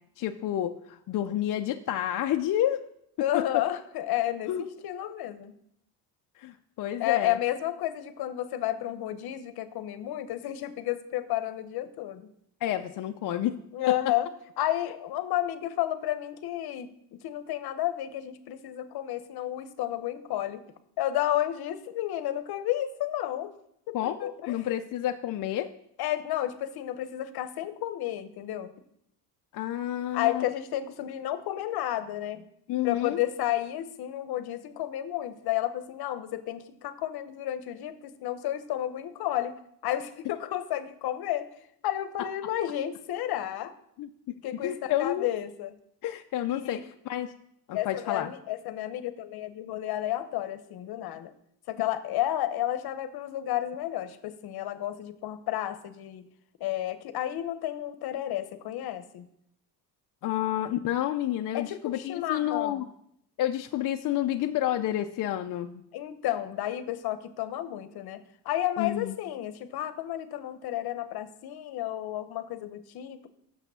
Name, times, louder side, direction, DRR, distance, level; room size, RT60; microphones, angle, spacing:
voice 1, 0.2-2.8 3.3-3.6 4.5-4.6 6.4-7.4 12.6-13.6 13.9-14.0 23.9-25.7 29.5-30.4 32.7-33.2 44.0-44.1 44.6-45.3 46.0-47.3 47.7-48.3 60.2-62.9 63.4-65.8 68.8-69.1, left 12 dB, 55° left, 5 dB, 0.5 m, -29 dB
voice 2, 3.2-5.5 7.0-12.3 13.7-14.3 14.6-20.6 21.0-23.5 23.9-24.7 26.0-28.7 30.1-32.5 32.8-39.6 39.8-41.5 41.8-43.7 44.4-45.7 46.5-46.8 47.7-51.3 51.7-56.2 56.6-59.3 61.5-62.9 65.9-73.3, left 13 dB, 70° left, 12 dB, 0.9 m, -31 dB
8.5 x 7.0 x 6.8 m, 0.74 s
cardioid pair, 150°, 39 cm